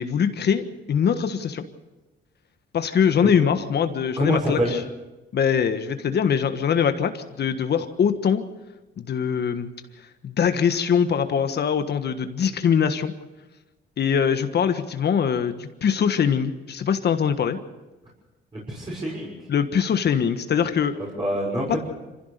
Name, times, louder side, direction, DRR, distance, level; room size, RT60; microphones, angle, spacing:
voice 1, 0.0-1.6 2.7-4.8 5.3-8.4 9.0-9.7 10.2-13.1 14.0-17.6 19.5-21.0 21.7-21.8, left 7 dB, 55° left, 9 dB, 1.5 m, -22 dB
voice 2, 4.2-4.7 18.5-19.3 21.0-21.8, right 1 dB, 25° right, -4 dB, 6.3 m, -26 dB
25.0 x 15.5 x 6.8 m, 1.1 s
cardioid pair, 90°, 20 cm